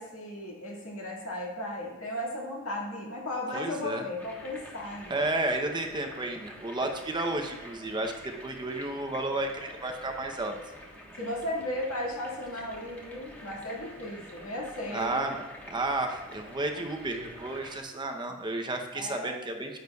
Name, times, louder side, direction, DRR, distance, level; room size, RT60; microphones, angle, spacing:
voice 1, 0.0-5.2 11.2-15.3 18.3-18.4 18.9-19.3, left 1 dB, 80° left, -2 dB, 2.0 m, -35 dB
voice 2, 3.5-4.0 5.1-8.1 8.4-10.5 14.9-15.4 15.7-19.8, right 2 dB, 20° right, 4 dB, 0.7 m, -32 dB
sound 1, 4.2-17.8, equal, 10° left, 1.2 m, -47 dB
10.5 x 7.9 x 2.3 m, 1.2 s
head